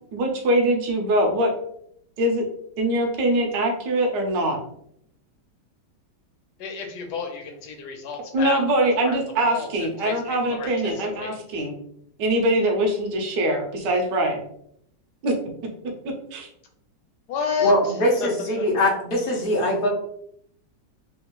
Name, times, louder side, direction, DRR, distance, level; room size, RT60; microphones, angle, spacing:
voice 1, 0.1-1.5 2.2-2.4 2.8-4.6 8.3-11.7 12.2-14.4 15.2-15.3 16.3-16.5, right 1 dB, 75° right, 1 dB, 1.4 m, -23 dB
voice 2, 6.6-9.1 9.4-11.4 17.3-18.3 18.6-18.9, left 6 dB, 70° left, 3 dB, 1.2 m, -31 dB
voice 3, 17.6-19.9, equal, 55° left, -2 dB, 0.6 m, -22 dB
3.5 x 2.4 x 3.0 m, 0.70 s
omnidirectional pair, 1.9 m